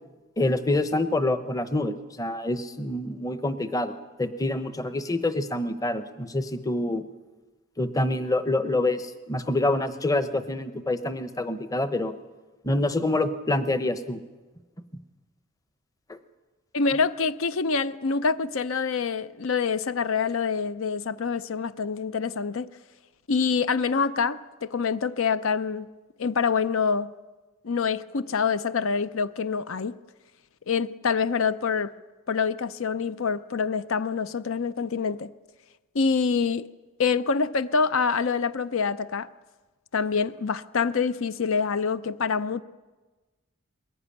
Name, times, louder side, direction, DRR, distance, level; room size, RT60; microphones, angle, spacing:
voice 1, 0.4-7.0 7.8-12.1 12.6-14.2 16.1-16.2, left 2 dB, 15° left, 0.9 m, -26 dB
voice 2, 16.7-22.7 23.3-25.9 26.2-27.1 27.6-29.9 30.7-31.9 32.3-35.3 35.9-36.7 37.0-39.3 39.9-42.6, left 5 dB, 70° left, 0.6 m, -26 dB
21.0 x 15.5 x 10.0 m
head